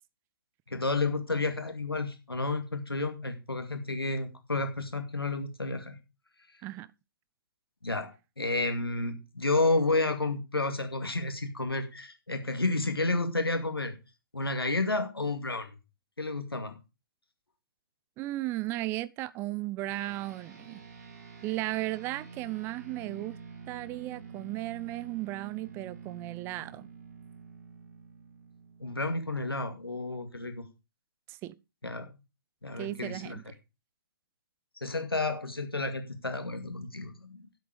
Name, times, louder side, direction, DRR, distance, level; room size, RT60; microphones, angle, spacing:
voice 1, 0.7-6.0 7.8-14.0 14.3-15.7 16.2-16.8 28.8-30.7 31.8-32.1 32.6-33.5 34.8-37.5, left 2 dB, 85° left, 2.3 m, -31 dB
voice 2, 18.2-20.8 21.4-23.4 23.7-26.9 31.3-31.5 32.8-33.4, right 17 dB, 20° right, 0.6 m, -35 dB
sound 1, 19.9-29.6, right 6 dB, 45° right, 2.0 m, -48 dB
11.0 x 8.1 x 5.1 m
figure-of-eight pair, 130°, 12 cm